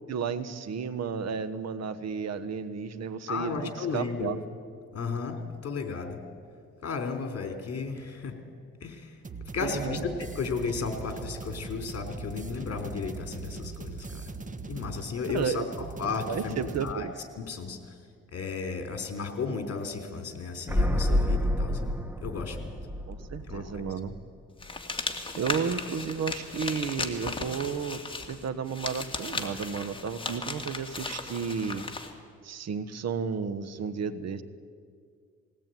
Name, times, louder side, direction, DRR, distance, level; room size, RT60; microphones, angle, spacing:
voice 1, 0.1-4.4 9.6-10.0 15.3-15.7 16.3-17.1 23.1-24.1 25.3-28.0 28.3-31.9 32.4-34.4, right 6 dB, 60° right, 13 dB, 1.3 m, -32 dB
voice 2, 3.3-4.4 4.9-6.2 6.8-8.3 8.8-9.2 9.5-14.2 14.7-15.6 16.0-17.1 17.4-17.8 18.3-22.7 23.5-23.8, left 5 dB, 50° left, 5 dB, 3.7 m, -34 dB
sound 1, 9.2-16.9, right 4 dB, 25° right, 1.4 m, -40 dB
sound 2, 20.7-24.4 24.7-24.8, left 1 dB, 5° right, 1.3 m, -28 dB
sound 3, 24.6-32.1, left 3 dB, 15° left, 2.3 m, -36 dB
20.0 x 18.5 x 9.3 m, 2.2 s
cardioid pair, 90°, 30 cm